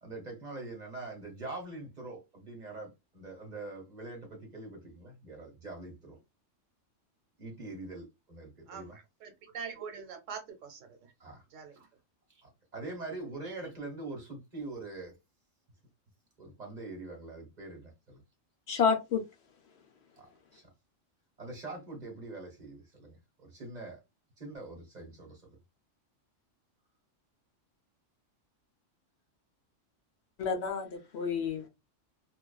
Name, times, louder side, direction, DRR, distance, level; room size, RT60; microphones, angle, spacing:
voice 1, 0.0-6.2 7.4-9.0 11.2-11.4 12.4-15.1 16.4-18.2 20.2-20.7 21.4-24.0 24.4-25.4, right 2 dB, 40° right, 1.0 m, -43 dB
voice 2, 8.7-10.9 11.5-11.9, right 6 dB, 85° right, 1.1 m, -44 dB
voice 3, 18.7-19.2 30.4-31.7, left 6 dB, 65° left, 0.8 m, -29 dB
2.4 x 2.3 x 2.3 m
omnidirectional pair, 1.3 m